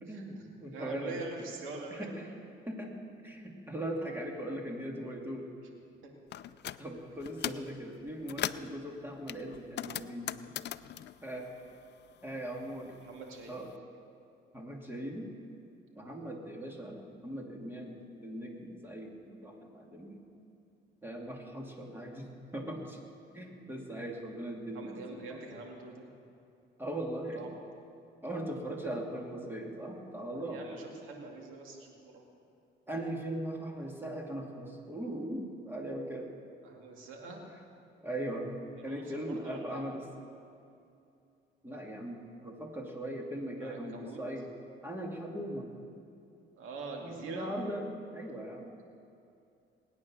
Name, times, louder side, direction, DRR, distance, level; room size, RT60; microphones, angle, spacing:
voice 1, 0.0-1.2 1.9-2.3 2.6-2.9 3.2-5.5 6.8-10.4 11.2-11.5 12.2-12.9 13.5-13.7 14.5-15.3 15.9-20.2 21.0-23.0 23.3-25.0 25.3-25.6 26.8-27.5 28.2-30.6 32.9-36.3 37.3-37.4 38.0-38.6 38.8-40.0 41.6-44.5 44.8-45.7 47.0-47.8 48.1-48.7, right 1 dB, 10° right, 0 dB, 2.7 m, -39 dB
voice 2, 0.7-2.3 6.0-6.1 13.0-13.6 24.7-26.1 27.3-27.6 30.4-32.2 36.6-37.5 38.8-39.8 43.6-44.2 46.6-47.5, right 3 dB, 90° right, 1 dB, 2.4 m, -44 dB
sound 1, 6.3-6.8 7.2-7.7 8.1-8.7 9.3-12.2 12.5-13.6, left 12 dB, 60° left, 0.4 m, -39 dB
20.5 x 9.4 x 6.3 m, 2.6 s
cardioid pair, 90°, 20 cm